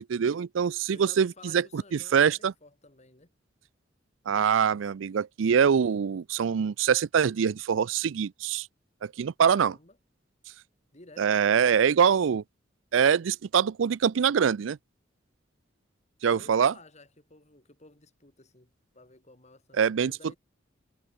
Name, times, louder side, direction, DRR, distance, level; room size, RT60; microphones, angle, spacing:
voice 1, 0.0-2.5 4.3-8.7 9.0-9.7 11.2-12.4 12.9-14.8 16.2-16.7 19.8-20.1, right 7 dB, 80° right, 0.4 m, -24 dB
voice 2, 0.9-3.3 9.4-10.0 10.9-11.3 16.2-20.4, left 2 dB, 35° left, 4.0 m, -53 dB
head